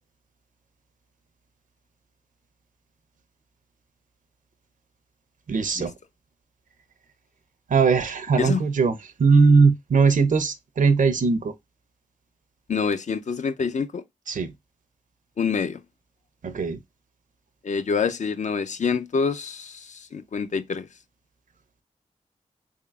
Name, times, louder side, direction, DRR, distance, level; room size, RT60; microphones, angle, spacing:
voice 1, 5.5-5.9 7.7-11.5 14.3-14.5 16.4-16.8, right 4 dB, 70° right, 0.6 m, -20 dB
voice 2, 12.7-14.0 15.4-15.8 17.6-20.9, left 5 dB, 60° left, 0.5 m, -26 dB
3.7 x 3.6 x 2.3 m
cardioid pair, 55°, 14 cm